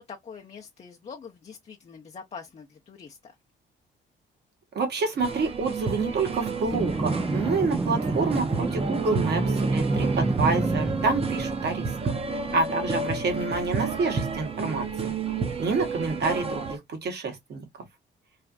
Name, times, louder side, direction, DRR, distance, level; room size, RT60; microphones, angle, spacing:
voice 1, 0.0-3.3 12.5-12.8, left 6 dB, 35° left, 0.6 m, -43 dB
voice 2, 4.7-11.9 12.5-15.1 15.6-17.6, right 4 dB, 55° right, 1.3 m, -28 dB
sound 1, 5.2-16.8, right 4 dB, 30° right, 0.8 m, -31 dB
sound 2, 6.7-12.0, right 2 dB, 10° right, 0.3 m, -28 dB
3.2 x 2.5 x 2.3 m
cardioid pair, 90°, 20 cm